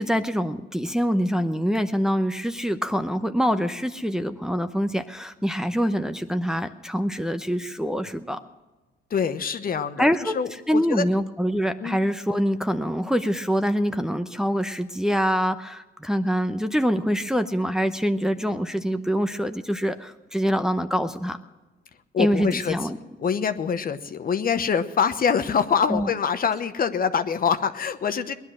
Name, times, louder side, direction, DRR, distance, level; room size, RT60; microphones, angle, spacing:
voice 1, 0.0-8.4 10.0-10.4 10.7-21.4 22.2-23.0 25.9-26.1, equal, 5° right, 7 dB, 0.8 m, -25 dB
voice 2, 9.1-11.0 11.8-12.0 22.1-22.8 23.2-28.3, left 6 dB, 45° left, 10 dB, 0.9 m, -25 dB
19.5 x 10.5 x 6.2 m, 1.2 s
cardioid pair, 90°, 20 cm